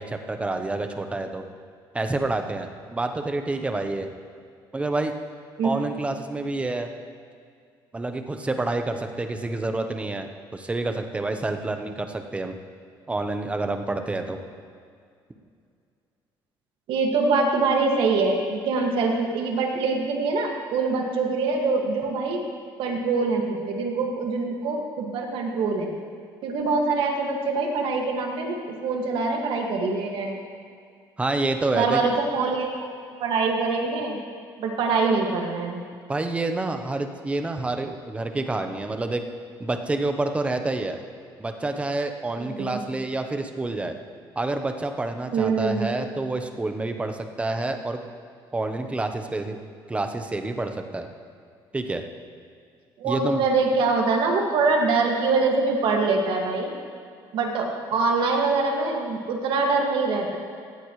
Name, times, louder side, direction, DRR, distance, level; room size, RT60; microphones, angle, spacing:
voice 1, 0.0-1.4 1.9-4.1 4.7-5.1 5.6-6.9 7.9-12.5 13.1-14.4 31.2-32.0 36.1-39.2 39.6-41.0 41.4-44.0 44.4-48.0 48.5-49.6 49.9-51.1 51.7-52.0 53.0-53.4, right 2 dB, 15° right, 6 dB, 0.9 m, -28 dB
voice 2, 16.9-22.4 22.8-25.9 26.4-30.4 31.7-32.9 33.2-34.2 34.6-35.8 42.4-42.8 45.3-45.9 53.0-56.7 57.3-60.4, right 4 dB, 75° right, 1 dB, 2.0 m, -24 dB
17.5 x 13.0 x 3.2 m, 2.2 s
cardioid pair, 135°, 9 cm